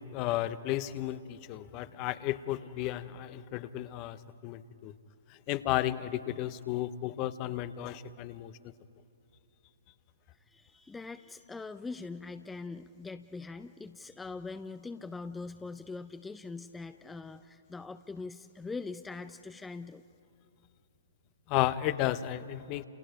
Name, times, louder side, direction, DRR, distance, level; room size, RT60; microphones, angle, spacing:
voice 1, 0.0-4.9 5.5-8.5 21.5-22.8, left 14 dB, 35° left, 14 dB, 0.8 m, -33 dB
voice 2, 10.3-20.0, left 3 dB, 10° left, 9 dB, 0.6 m, -42 dB
29.5 x 29.5 x 5.0 m, 2.7 s
figure-of-eight pair, 120°, 0 cm